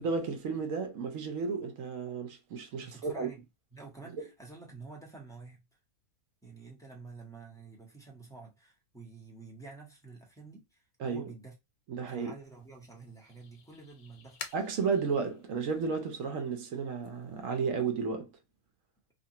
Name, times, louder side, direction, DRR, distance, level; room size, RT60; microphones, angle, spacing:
voice 1, 0.0-3.3 4.2-4.3 11.0-11.3 11.9-12.3 14.5-18.3, right 5 dB, 65° right, 1.0 m, -33 dB
voice 2, 2.8-3.4 3.7-5.6 6.4-11.6 12.1-14.4, right 3 dB, 5° left, 0.8 m, -49 dB
sound 1, 12.5-17.7, left 7 dB, 75° left, 1.1 m, -51 dB
2.7 x 2.5 x 2.7 m
omnidirectional pair, 1.6 m